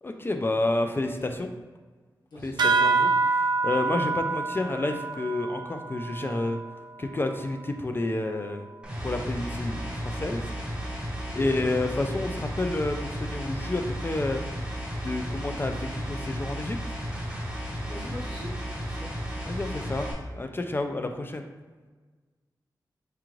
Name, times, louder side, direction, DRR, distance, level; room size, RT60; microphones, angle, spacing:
voice 1, 0.0-1.5 2.4-6.6 7.0-8.7 9.0-10.5 11.3-14.4 14.9-16.8 19.5-21.5, left 2 dB, 30° left, 5 dB, 0.3 m, -30 dB
sound 1, 2.6-7.5, right 4 dB, 80° right, 0.3 m, -27 dB
sound 2, 8.8-20.1, equal, 10° right, 1.0 m, -34 dB
voice 2, 11.2-11.7 17.9-18.5 18.8-19.1 20.4-20.5, left 1 dB, 85° left, -6 dB, 1.0 m, -42 dB
4.7 x 2.4 x 3.0 m, 1.4 s
wide cardioid pair, 80°, 7 cm